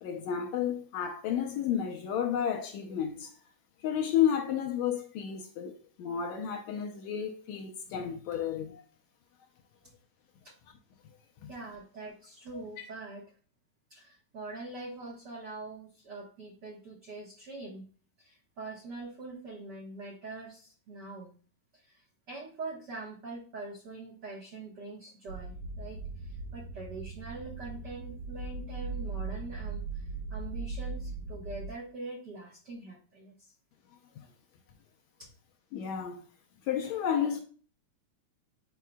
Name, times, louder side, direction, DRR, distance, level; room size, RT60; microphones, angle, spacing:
voice 1, 0.0-3.3 3.8-8.8 11.4-11.5 12.8-12.9 35.7-36.2 36.7-37.4, left 9 dB, 75° left, 1.8 m, -31 dB
voice 2, 11.5-13.2 13.9-17.8 18.2-21.3 21.7-33.5 35.2-35.3, right 2 dB, 65° right, 1.0 m, -44 dB
sound 1, 25.3-31.7, right 4 dB, 80° right, 2.6 m, -39 dB
9.2 x 4.7 x 2.2 m
omnidirectional pair, 3.5 m